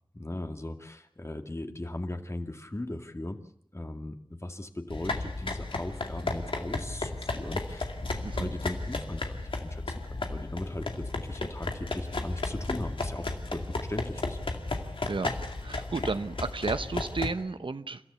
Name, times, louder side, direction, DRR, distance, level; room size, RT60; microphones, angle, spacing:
voice 1, 0.1-3.4 3.7-14.4, left 1 dB, 35° left, 6 dB, 2.3 m, -38 dB
sound 1, 4.9-17.3, left 2 dB, 90° left, 2.3 m, -34 dB
voice 2, 15.6-18.0, right 4 dB, 75° right, 11 dB, 1.0 m, -32 dB
29.5 x 14.0 x 8.3 m, 0.68 s
wide cardioid pair, 45°, 9 cm